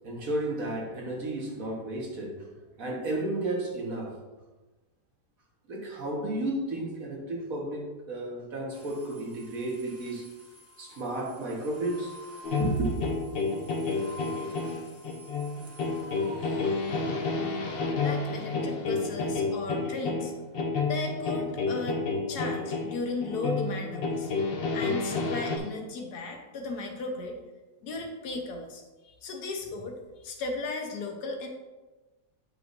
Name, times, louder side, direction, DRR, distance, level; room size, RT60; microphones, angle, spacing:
voice 1, 0.0-2.5 2.8-4.1 5.7-10.3 10.8-12.1 12.6-13.0, right 2 dB, 60° right, -1 dB, 1.7 m, -32 dB
sound 1, 8.7-20.4, equal, 15° right, 0.6 m, -50 dB
sound 2, 12.4-25.6, left 3 dB, 50° left, 0.7 m, -30 dB
voice 2, 18.0-20.3 20.8-22.0 22.3-24.3 24.7-27.4 27.8-31.5, left 3 dB, 70° left, 3 dB, 1.4 m, -36 dB
8.2 x 6.0 x 2.6 m, 1.2 s
omnidirectional pair, 1.7 m